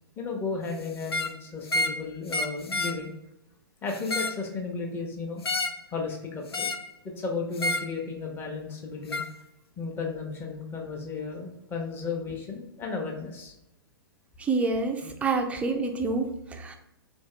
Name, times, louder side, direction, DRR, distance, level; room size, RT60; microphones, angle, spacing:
voice 1, 0.2-3.1 3.8-5.4 5.9-6.7 7.0-9.2 9.8-13.5, left 4 dB, 15° left, 1 dB, 0.8 m, -34 dB
sound 1, 1.0-1.4 1.7-2.0 2.3-3.0 3.9-4.4 5.4-5.8 6.5-6.9 7.6-7.9 9.1-9.3, left 2 dB, 85° left, 0.4 m, -29 dB
voice 2, 14.4-16.7, right 3 dB, 10° right, 4 dB, 0.4 m, -28 dB
3.8 x 2.7 x 3.2 m, 0.87 s
figure-of-eight pair, 120°, 13 cm